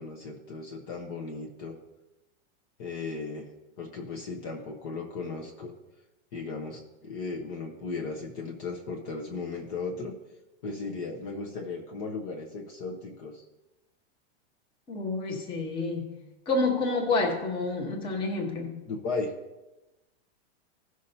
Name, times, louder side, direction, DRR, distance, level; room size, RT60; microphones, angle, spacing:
voice 1, 0.0-1.8 2.8-5.7 6.3-10.1 10.6-13.4 18.9-19.4, left 3 dB, 30° left, 0 dB, 1.2 m, -36 dB
voice 2, 14.9-16.1 16.5-18.8, left 3 dB, 15° left, 0 dB, 1.2 m, -28 dB
17.5 x 6.2 x 2.8 m, 1.0 s
supercardioid pair, 170°, 34 cm